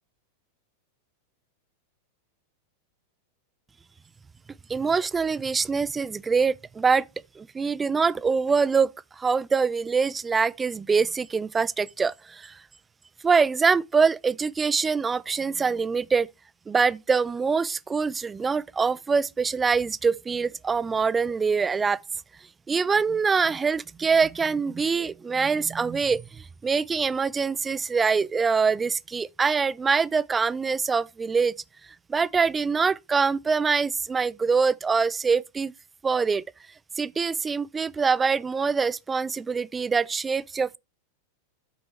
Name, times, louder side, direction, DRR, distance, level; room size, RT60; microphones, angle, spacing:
voice 1, 4.7-7.1 7.4-8.9 9.2-12.6 13.2-16.3 16.7-22.0 22.7-31.5 32.1-35.7 36.0-36.4 37.0-40.8, right 5 dB, 15° right, 0.4 m, -24 dB
9.6 x 5.2 x 4.5 m
figure-of-eight pair, 90°, 0 cm